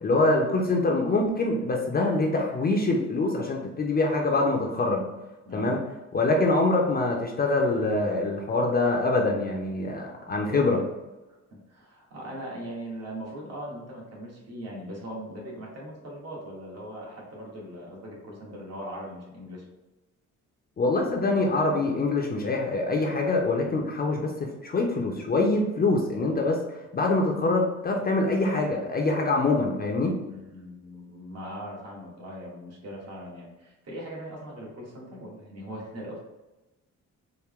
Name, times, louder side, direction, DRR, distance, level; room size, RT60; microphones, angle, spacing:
voice 1, 0.0-5.0 5.5-5.8 6.1-10.8 20.8-26.6 26.9-30.2, left 2 dB, 30° left, 0 dB, 0.5 m, -24 dB
voice 2, 5.4-5.8 11.5-19.6 30.3-36.2, equal, 55° right, -3 dB, 1.4 m, -40 dB
4.4 x 2.1 x 3.5 m, 1.0 s
cardioid pair, 130°, 29 cm